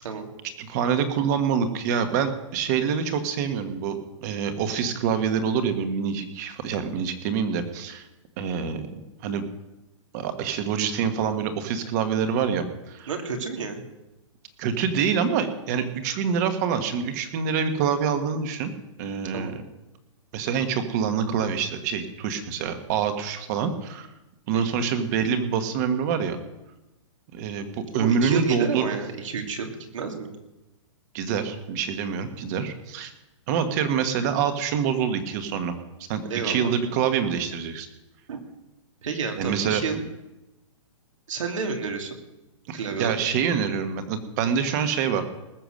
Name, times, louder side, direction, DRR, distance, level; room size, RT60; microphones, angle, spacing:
voice 1, 0.6-8.0 8.4-9.4 10.1-13.1 14.6-18.7 19.0-19.6 20.3-24.1 24.5-26.4 27.3-28.9 31.1-33.1 33.5-35.7 36.1-37.9 39.4-39.8 42.7-45.2, right 7 dB, 35° right, 8 dB, 1.4 m, -26 dB
voice 2, 13.1-13.8 19.3-19.6 24.5-24.8 28.0-30.3 36.2-36.8 38.3-38.4 39.0-40.0 41.3-42.2 42.7-43.2, right 5 dB, 80° right, 3 dB, 2.7 m, -30 dB
20.0 x 6.9 x 6.6 m, 1.0 s
hypercardioid pair, 160°, 16 cm